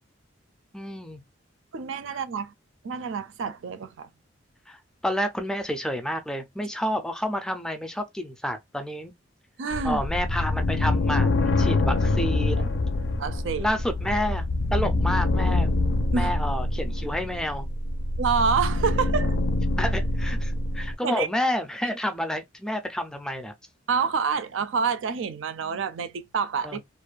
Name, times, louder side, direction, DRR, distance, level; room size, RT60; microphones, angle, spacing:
voice 1, 0.7-1.2 4.7-9.1 9.8-12.7 13.6-14.5 14.7-15.7 16.1-17.7 19.8-23.5 26.6-26.8, equal, 5° left, 0.4 m, -29 dB
voice 2, 1.7-2.5 2.8-4.1 9.6-10.0 12.6-12.7 13.2-13.7 16.1-16.3 18.2-19.4 21.0-21.3 23.9-26.8, right 5 dB, 85° right, 0.4 m, -27 dB
sound 1, 9.7-21.0, left 2 dB, 70° left, 0.4 m, -25 dB
2.5 x 2.2 x 2.3 m
head